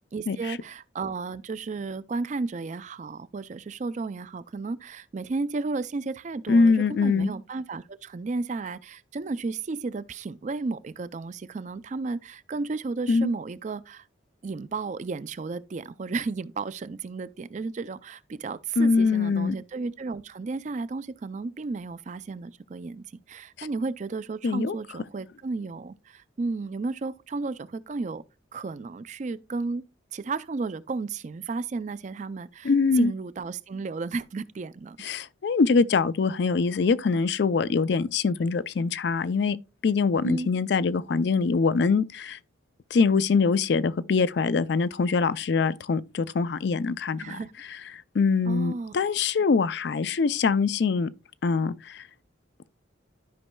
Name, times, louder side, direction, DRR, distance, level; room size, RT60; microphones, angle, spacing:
voice 1, 0.1-14.1 14.4-28.2 28.5-29.8 30.1-35.0 40.2-40.5 47.2-47.5 48.5-49.1, right 3 dB, 40° right, 0.4 m, -33 dB
voice 2, 6.5-7.3 13.1-13.3 18.8-19.5 23.6-23.7 24.4-24.7 32.6-33.1 35.0-39.6 39.8-42.4 42.9-47.4 48.1-51.1 51.4-52.0, left 4 dB, 60° left, 0.4 m, -23 dB
13.0 x 5.3 x 2.2 m
head